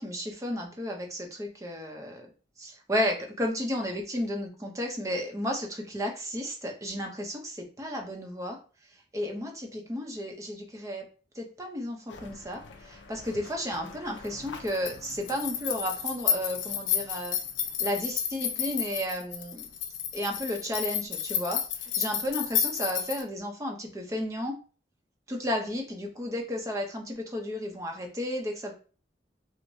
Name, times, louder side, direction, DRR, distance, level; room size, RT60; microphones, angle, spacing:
voice 1, 0.0-2.3 2.6-8.6 9.1-11.0 11.3-17.4 17.8-19.7 20.1-24.5 25.3-28.7, left 1 dB, 15° right, 1 dB, 0.6 m, -33 dB
sound 1, 12.1-23.2, left 9 dB, 85° left, 0.5 m, -32 dB
4.6 x 2.1 x 2.6 m, 0.37 s
head